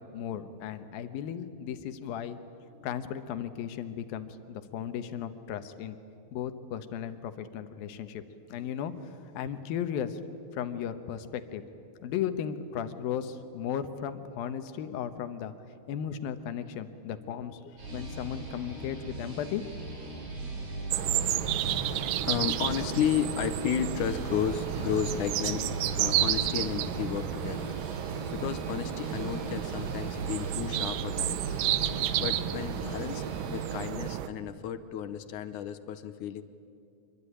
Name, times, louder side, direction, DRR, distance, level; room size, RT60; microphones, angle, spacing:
voice 1, 0.0-2.4 2.8-6.0 6.3-8.2 8.5-10.2 10.5-11.6 12.0-15.5 15.9-17.6 17.9-19.6, left 9 dB, 90° left, 10 dB, 3.0 m, -35 dB
voice 2, 17.8-18.2 18.7-18.8 20.0-20.2 21.4-27.8 28.1-31.4 32.2-36.4, left 9 dB, 70° left, 11 dB, 2.2 m, -33 dB
sound 1, 17.8-33.9, right 1 dB, 55° right, 6.0 m, -39 dB
sound 2, 20.9-34.3, right 13 dB, 80° right, 2.4 m, -31 dB
26.0 x 22.0 x 10.0 m, 2.6 s
omnidirectional pair, 4.0 m